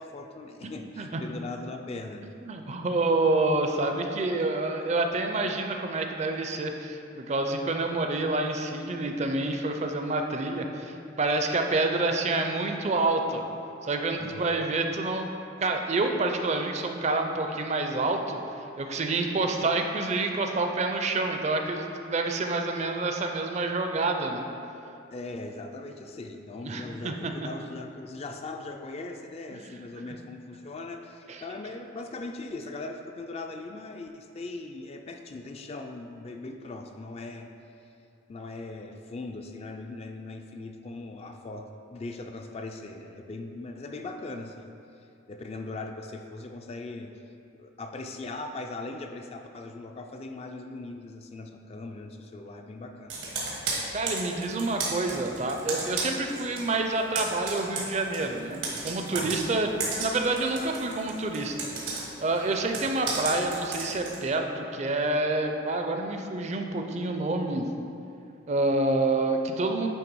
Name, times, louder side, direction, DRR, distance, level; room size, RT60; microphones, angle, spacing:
voice 1, 0.0-2.3 14.2-14.7 25.1-37.5 38.3-44.7 45.3-47.1 47.5-53.2 59.2-59.4, left 2 dB, 30° left, 4 dB, 0.3 m, -39 dB
voice 2, 0.6-1.2 2.4-13.4 13.8-15.3 15.6-18.4 18.8-24.5 26.6-27.3 29.5-29.7 31.3-31.4 53.9-59.7 60.0-67.7 68.5-69.9, right 2 dB, 35° right, 4 dB, 0.4 m, -28 dB
Computer keyboard, 53.1-56.7 57.0-64.2, right 3 dB, 90° right, 1.4 m, -34 dB
9.0 x 3.3 x 4.6 m, 2.7 s
head